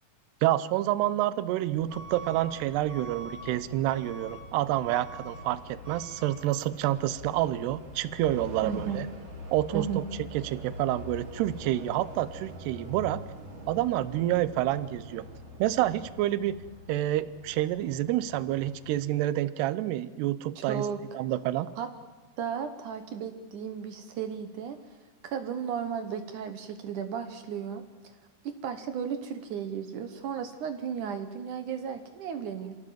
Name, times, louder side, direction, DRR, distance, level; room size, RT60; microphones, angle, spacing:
voice 1, 0.4-9.1 9.5-10.0 10.3-13.2 13.7-15.3 15.6-16.6 16.9-20.8 21.1-21.7, right 14 dB, 90° right, 16 dB, 2.9 m, -28 dB
Truck / Alarm, 1.8-19.0, equal, 45° right, 6.3 m, -44 dB
voice 2, 8.6-9.1 9.7-10.0 20.6-21.0 21.8-21.9 22.4-24.8 25.2-27.8 28.6-32.8, right 7 dB, 65° right, 9 dB, 2.2 m, -34 dB
28.0 x 16.5 x 7.5 m, 1.4 s
omnidirectional pair, 4.6 m